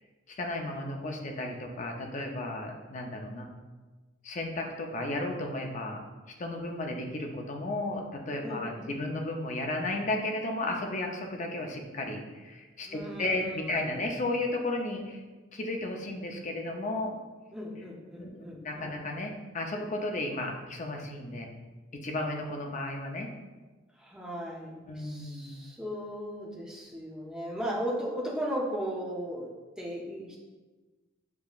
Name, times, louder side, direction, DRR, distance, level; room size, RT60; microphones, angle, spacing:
voice 1, 0.3-3.5 4.2-6.0 6.4-15.2 15.5-17.1 18.2-21.5 21.9-23.3 24.9-25.6, left 2 dB, 40° left, 2 dB, 0.5 m, -34 dB
voice 2, 8.4-8.9 12.8-14.1 17.5-19.0 24.0-30.4, equal, 5° right, -4 dB, 0.7 m, -37 dB
6.8 x 2.8 x 2.4 m, 1.2 s
head